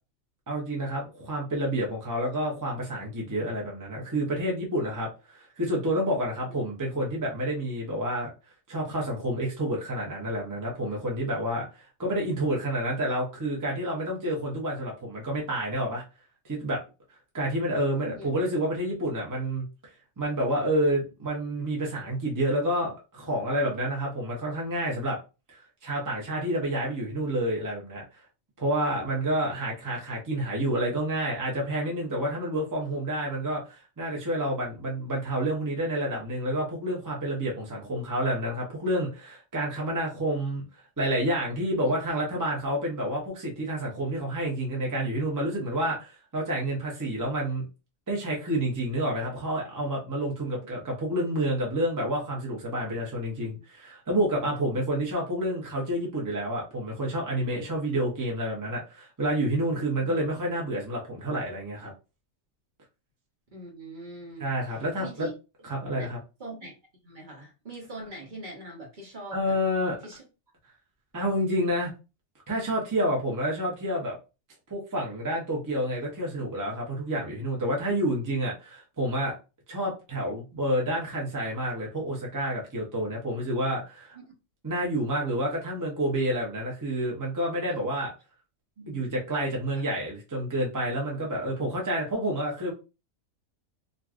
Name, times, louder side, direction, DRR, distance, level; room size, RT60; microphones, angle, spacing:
voice 1, 0.5-8.3 8.7-16.0 16.5-16.8 17.3-19.6 20.2-25.2 25.5-28.2 28.6-40.6 41.0-47.6 48.1-61.9 64.4-65.3 65.6-66.2 69.3-70.0 71.1-71.9 72.5-74.1 74.7-79.3 79.7-84.2 84.6-88.1 88.9-92.7, right 1 dB, 20° right, 0.5 m, -29 dB
voice 2, 63.5-64.5 65.0-65.3 66.4-66.7 67.0-69.6 70.0-70.2 84.1-84.2 87.7-87.8 88.8-89.2 89.7-89.8, right 1 dB, 40° right, 1.0 m, -42 dB
3.1 x 2.5 x 2.4 m
omnidirectional pair, 1.4 m